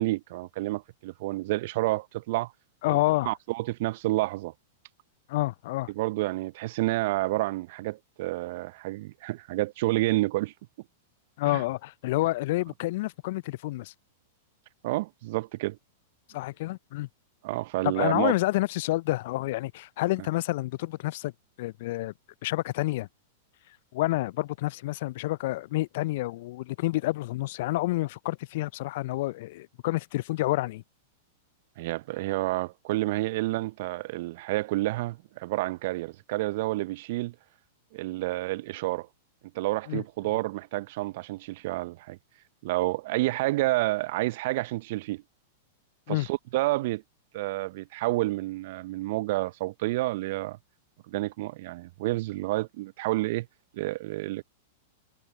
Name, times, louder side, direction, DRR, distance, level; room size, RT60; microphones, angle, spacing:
voice 1, 0.0-2.5 2.9-3.0 3.3-4.5 5.9-10.5 11.5-11.6 14.8-15.8 17.4-18.3 31.8-37.3 37.9-39.1 39.5-42.2 42.6-45.2 46.1-47.0 47.3-50.6 51.1-53.5 53.7-54.4, right 19 dB, 55° right, 0.6 m, -29 dB
voice 2, 2.8-3.3 5.3-5.9 11.4-13.9 16.3-17.1 17.8-21.3 21.6-22.1 22.4-23.1 23.9-30.8 39.9-40.0 46.1-46.3, left 18 dB, 55° left, 0.4 m, -29 dB
figure-of-eight pair, 100°, 0 cm